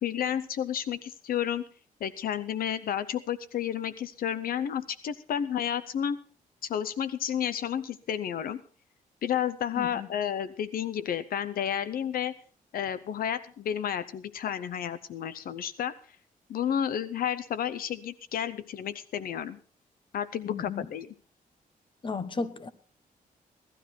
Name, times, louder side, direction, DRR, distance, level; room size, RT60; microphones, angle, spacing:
voice 1, 0.0-1.6 2.0-6.2 6.6-8.6 9.2-12.3 12.7-15.9 16.5-19.6 20.1-21.1, left 9 dB, 80° left, 15 dB, 0.7 m, -31 dB
voice 2, 9.8-10.1 20.5-20.9 22.0-22.7, left 4 dB, 35° left, 13 dB, 1.2 m, -34 dB
17.5 x 12.5 x 4.4 m, 0.42 s
cardioid pair, 115°, 15 cm